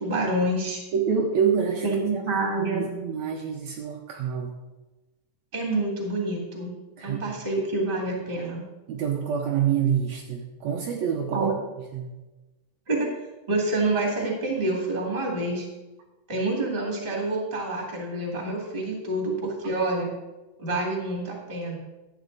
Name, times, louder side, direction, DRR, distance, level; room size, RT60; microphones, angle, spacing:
voice 1, 0.0-0.8 1.8-2.9 5.5-6.7 7.0-8.7 11.3-11.5 12.9-13.1 13.5-15.7 16.3-20.1 20.6-21.8, right 2 dB, 20° right, -1 dB, 2.3 m, -27 dB
voice 2, 0.9-1.8 2.6-4.6 7.0-7.2 8.9-11.4 11.9-12.1, right 7 dB, 70° right, 1 dB, 2.0 m, -26 dB
12.0 x 8.7 x 4.0 m, 1.1 s
omnidirectional pair, 3.4 m